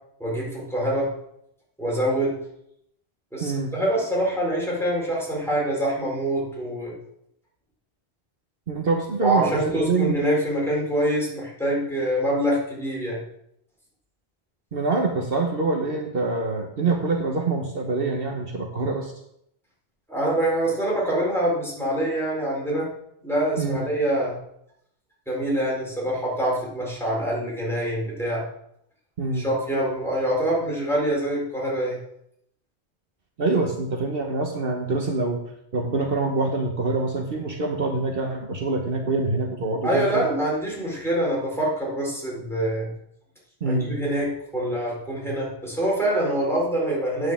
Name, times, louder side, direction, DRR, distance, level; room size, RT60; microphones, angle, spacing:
voice 1, 0.2-1.1 1.8-2.4 3.3-6.9 9.2-13.2 20.1-22.9 23.2-24.4 25.3-28.4 29.3-32.0 39.8-42.9 43.6-47.3, right 1 dB, ahead, -5 dB, 4.2 m, -25 dB
voice 2, 3.4-3.7 8.7-10.2 14.7-19.1 23.6-23.8 29.2-29.5 33.4-35.4 35.7-40.3 43.6-44.0, right 3 dB, 60° right, 2 dB, 1.3 m, -25 dB
9.2 x 6.5 x 7.3 m, 0.75 s
omnidirectional pair, 1.1 m